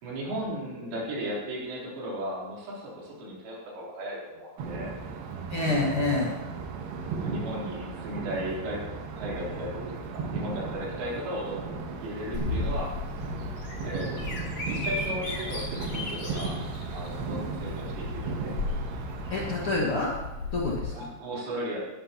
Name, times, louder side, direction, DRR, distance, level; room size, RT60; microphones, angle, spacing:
voice 1, 0.0-4.9 7.2-8.8 9.1-12.9 13.8-16.5 16.9-18.5 20.9-21.9, equal, 85° right, -5 dB, 6.4 m, -36 dB
sound 1, 4.6-19.8, right 4 dB, 70° right, 3.1 m, -36 dB
voice 2, 5.5-6.4 19.3-20.1 20.5-20.9, left 2 dB, 75° left, -4 dB, 1.2 m, -27 dB
Bird vocalization bird call bird song, 12.3-20.8, left 2 dB, 35° left, 2.9 m, -35 dB
19.5 x 13.0 x 3.0 m, 1.1 s
omnidirectional pair, 5.5 m